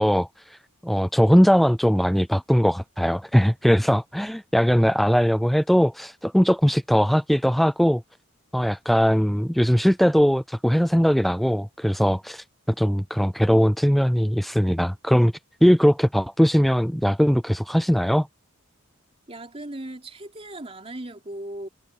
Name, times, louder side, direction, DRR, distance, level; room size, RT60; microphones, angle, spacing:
voice 1, 0.0-8.0 8.5-15.3 15.6-18.3, equal, ahead, 0.3 m, -20 dB
voice 2, 19.3-21.7, right 1 dB, 30° right, 3.3 m, -37 dB
head